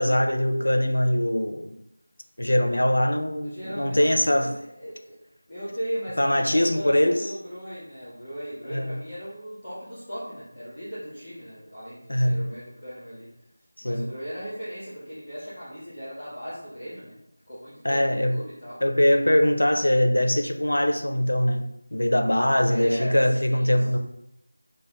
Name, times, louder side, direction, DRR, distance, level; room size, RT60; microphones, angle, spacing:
voice 1, 0.0-1.7 2.4-4.5 6.2-7.3 8.7-8.9 12.1-12.6 13.8-14.1 17.8-18.4 18.8-24.0, left 1 dB, 80° left, 5 dB, 0.5 m, -22 dB
voice 2, 3.4-5.2 5.5-13.3 13.8-17.2 17.5-18.8 22.7-23.7, equal, ahead, -13 dB, 0.7 m, -37 dB
5.8 x 2.2 x 2.2 m, 0.79 s
figure-of-eight pair, 180°, 0 cm